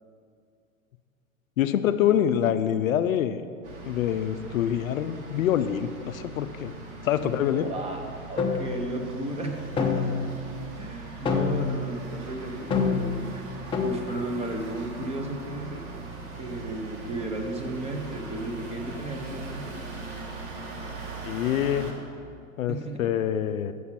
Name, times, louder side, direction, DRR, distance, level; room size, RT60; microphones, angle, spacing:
voice 1, 1.6-3.4 3.8-6.7 7.0-7.7 21.2-21.9 22.6-23.7, left 10 dB, 70° left, 11 dB, 0.5 m, -25 dB
sound 1, 3.6-21.9, right 3 dB, 55° right, 1.6 m, -40 dB
voice 2, 7.2-8.0 8.3-10.3 10.7-13.5 13.8-15.8 16.4-19.8 22.7-23.1, right 1 dB, 15° right, 3 dB, 0.8 m, -34 dB
sound 2, 8.4-8.7 9.8-10.4 11.3-11.8 12.7-13.2 13.7-14.0, left 5 dB, 10° left, 0.5 m, -26 dB
7.0 x 6.3 x 5.5 m, 2.2 s
figure-of-eight pair, 95°, 43 cm